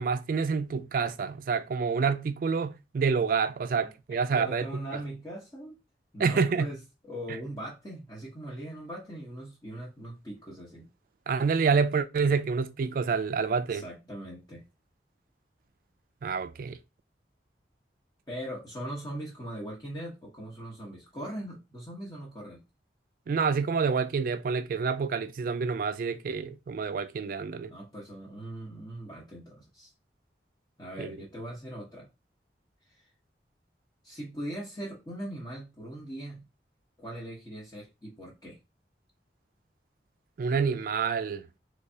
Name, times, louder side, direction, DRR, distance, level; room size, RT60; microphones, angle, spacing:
voice 1, 0.0-4.7 6.2-6.7 11.3-13.8 16.2-16.8 23.3-27.7 31.0-31.1 40.4-41.4, right 5 dB, 50° right, 0.3 m, -28 dB
voice 2, 4.1-5.8 6.1-10.9 13.7-14.6 18.3-22.6 27.6-29.9 30.8-32.1 32.9-33.1 34.0-36.4 37.0-38.6, right 1 dB, 20° left, 1.0 m, -40 dB
3.3 x 3.2 x 2.7 m
head